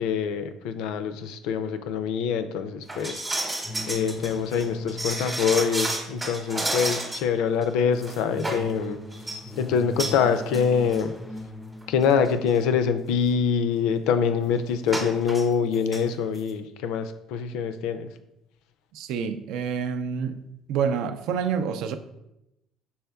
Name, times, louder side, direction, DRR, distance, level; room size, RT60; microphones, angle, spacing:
voice 1, 0.0-3.2 3.9-11.1 11.9-18.1, left 6 dB, 85° left, 0.4 m, -25 dB
sound 1, 2.9-7.3 7.6-7.7 8.0-8.7 9.1-9.4 10.0-10.2 10.5-10.6 10.9-11.0 11.8-11.9 12.2-12.5 14.9-15.4 15.7-16.0 16.3-16.4, right 1 dB, 15° right, 0.8 m, -31 dB
sound 2, 3.6-7.0 7.9-12.7, left 2 dB, 10° left, 0.4 m, -39 dB
voice 2, 18.9-20.4 20.7-21.9, right 6 dB, 75° right, 0.4 m, -27 dB
5.5 x 4.2 x 2.3 m
cardioid pair, 115°, 0 cm